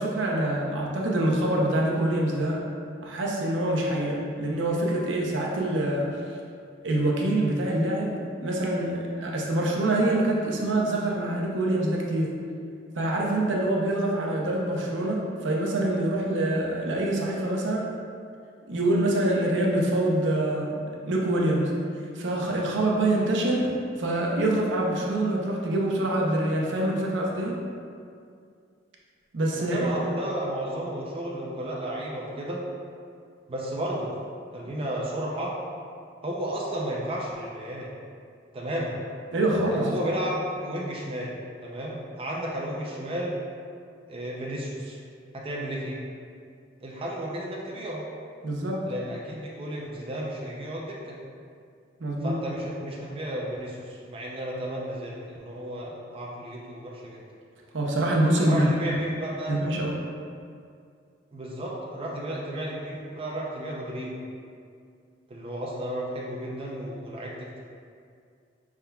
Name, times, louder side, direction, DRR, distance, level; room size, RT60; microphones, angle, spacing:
voice 1, 0.0-2.6 3.0-6.1 6.8-12.3 13.0-17.9 18.7-21.7 22.2-23.6 24.0-27.6 29.3-29.9 39.3-39.9 48.4-48.8 52.0-52.4 57.7-58.8 59.5-60.0, right 1 dB, 70° right, -2 dB, 0.7 m, -25 dB
voice 2, 29.5-32.6 33.5-34.2 34.5-35.5 36.2-37.9 38.5-38.9 39.7-41.3 41.6-43.3 44.1-45.0 45.3-46.0 46.8-48.0 48.9-51.2 52.2-57.2 58.4-59.6 61.3-64.2 65.3-67.6, right 1 dB, 30° right, -4 dB, 0.4 m, -33 dB
5.4 x 3.6 x 2.3 m, 2.3 s
head